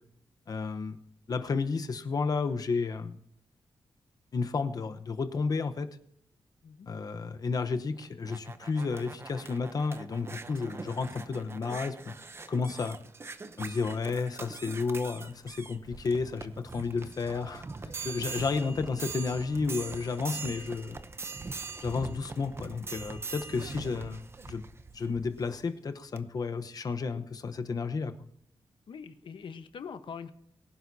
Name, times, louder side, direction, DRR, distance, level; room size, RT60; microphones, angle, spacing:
voice 1, 0.5-1.0 1.3-3.2 4.3-5.9 6.9-12.1 12.5-13.0 13.6-17.6 18.0-21.0 21.8-24.6 24.9-28.1, left 4 dB, 45° left, 8 dB, 1.0 m, -32 dB
sound 1, 7.9-25.6 26.2-26.3, right 4 dB, 30° right, 0.7 m, -42 dB
voice 2, 28.9-30.3, left 6 dB, 65° left, 9 dB, 1.1 m, -43 dB
23.0 x 11.0 x 2.8 m, 0.71 s
wide cardioid pair, 160°, 9 cm